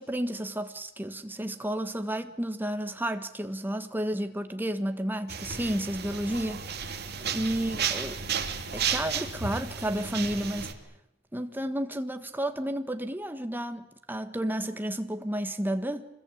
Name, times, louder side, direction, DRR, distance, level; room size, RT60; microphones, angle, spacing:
voice 1, 0.0-7.0 7.3-8.2 8.7-10.7 11.3-16.1, right 1 dB, 10° right, 1.5 m, -32 dB
sound 1, 5.3-10.7, right 7 dB, 55° right, 2.5 m, -33 dB
26.5 x 21.5 x 8.6 m
head